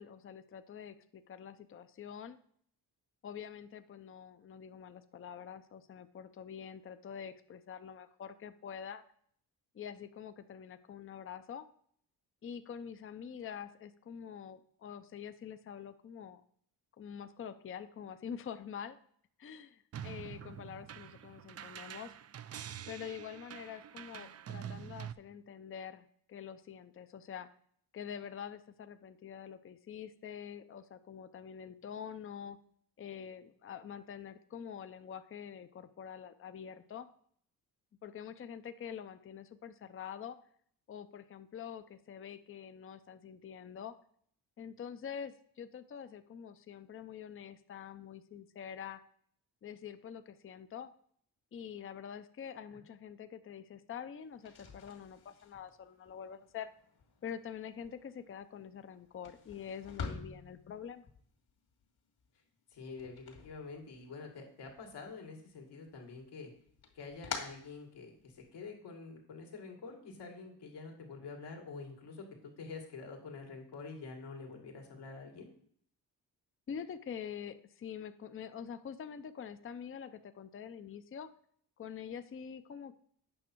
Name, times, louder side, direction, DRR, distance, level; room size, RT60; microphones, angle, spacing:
voice 1, 0.0-2.4 3.2-9.0 9.7-11.7 12.4-16.4 17.0-19.0 19.4-22.1 22.9-27.5 27.9-32.6 33.0-37.1 38.0-40.4 40.9-43.9 44.6-49.0 49.6-50.9 51.5-56.7 57.2-61.1 76.7-81.3 81.8-83.0, left 8 dB, 30° left, 11 dB, 0.5 m, -46 dB
sound 1, 19.9-25.1, right 9 dB, 40° right, 0.4 m, -46 dB
sound 2, 54.3-64.3 64.6-65.5 65.9-68.5, left 5 dB, 65° left, 2.1 m, -48 dB
voice 2, 62.7-66.5 66.9-75.5, left 4 dB, 80° left, 1 dB, 2.2 m, -47 dB
8.6 x 6.0 x 4.5 m, 0.62 s
cardioid pair, 100°, 41 cm